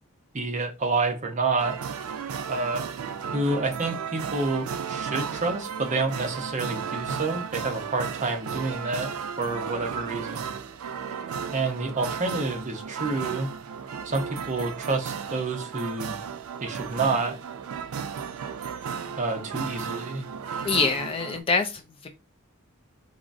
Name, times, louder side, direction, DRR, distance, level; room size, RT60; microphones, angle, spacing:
voice 1, 0.3-1.8 2.5-2.9 3.3-10.5 11.5-13.5 14.0-16.1 16.6-17.4 19.2-20.3, right 3 dB, 35° right, 0.6 m, -28 dB
sound 1, 1.6-21.4, right 7 dB, 90° right, 0.4 m, -34 dB
voice 2, 20.6-22.1, left 4 dB, 25° left, 0.3 m, -25 dB
3.7 x 2.0 x 2.4 m
head